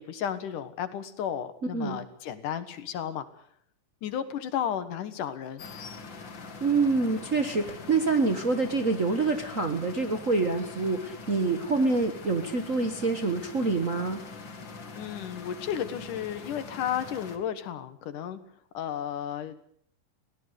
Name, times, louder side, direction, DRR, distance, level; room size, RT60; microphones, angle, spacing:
voice 1, 0.0-3.3 4.0-5.6 14.9-18.4 18.7-19.6, left 9 dB, 75° left, 11 dB, 3.0 m, -33 dB
sound 1, 5.6-17.4, left 4 dB, 40° left, 2.5 m, -43 dB
voice 2, 6.6-14.2, right 3 dB, 60° right, 5 dB, 0.8 m, -26 dB
23.0 x 17.0 x 8.2 m, 0.62 s
omnidirectional pair, 3.7 m